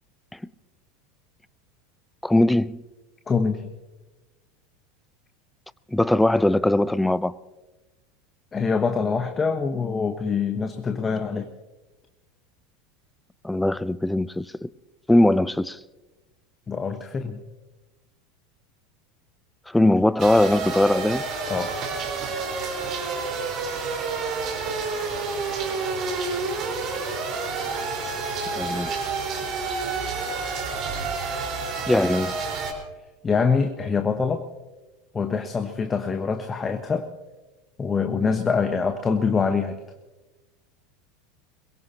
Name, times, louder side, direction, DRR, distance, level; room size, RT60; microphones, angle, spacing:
voice 1, 2.2-2.8 5.9-7.3 13.4-14.7 15.1-15.8 19.7-21.3 28.5-28.9 31.9-32.4, left 1 dB, 5° left, 0.5 m, -20 dB
voice 2, 3.3-3.7 8.5-11.5 16.7-17.4 21.5-21.7 33.2-34.4 35.1-37.1 37.8-39.8, left 5 dB, 20° left, 1.1 m, -24 dB
sound 1, 20.2-32.7, right 4 dB, 40° right, 4.3 m, -29 dB
23.0 x 22.0 x 2.8 m
figure-of-eight pair, 80°, 0 cm